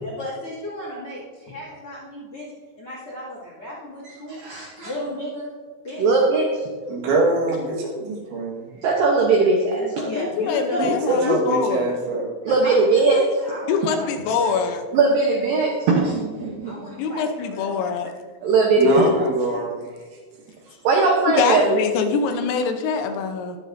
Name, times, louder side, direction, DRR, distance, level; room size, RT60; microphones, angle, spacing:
voice 1, 0.0-2.5 2.8-4.4 4.8-5.5 5.8-6.1 10.0-11.3 12.5-12.7 13.1-14.6 16.6-17.9, left 1 dB, 40° left, -5 dB, 2.2 m, -34 dB
voice 2, 4.4-4.9 6.0-6.5 8.8-10.1 12.4-13.2 14.9-16.9 18.4-19.1 20.8-21.8, right 3 dB, 90° right, 0 dB, 1.9 m, -19 dB
voice 3, 6.8-8.8 10.8-12.4 18.8-19.9, right 2 dB, 70° right, -2 dB, 3.9 m, -24 dB
voice 4, 9.8-12.0 13.7-14.9 17.0-18.1 19.5-19.6 21.3-23.6, left 5 dB, 85° left, 6 dB, 3.5 m, -24 dB
21.5 x 7.6 x 2.7 m, 1.5 s
omnidirectional pair, 5.7 m